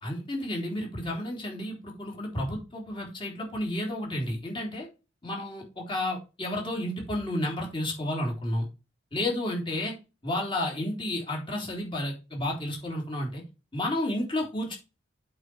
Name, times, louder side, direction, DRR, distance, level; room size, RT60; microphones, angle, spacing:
voice 1, 0.0-4.9 5.2-8.7 9.1-9.9 10.2-13.4 13.7-14.8, left 1 dB, 25° left, 0 dB, 3.3 m, -31 dB
8.0 x 4.7 x 5.3 m, 0.29 s
head